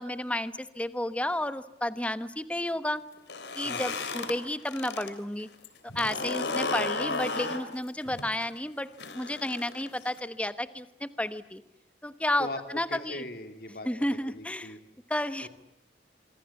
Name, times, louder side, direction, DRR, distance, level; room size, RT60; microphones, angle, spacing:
voice 1, 0.0-3.0 3.5-5.5 5.9-8.9 9.1-11.6 12.0-13.2 13.9-14.8 15.1-15.5, left 1 dB, 5° left, 13 dB, 1.1 m, -32 dB
sound 1, 3.2-5.1 5.4-10.2, left 3 dB, 75° left, 3.5 m, -34 dB
voice 2, 12.4-13.9 14.3-14.8 15.4-15.5, left 2 dB, 55° left, 7 dB, 2.5 m, -39 dB
26.0 x 25.0 x 8.4 m, 0.83 s
head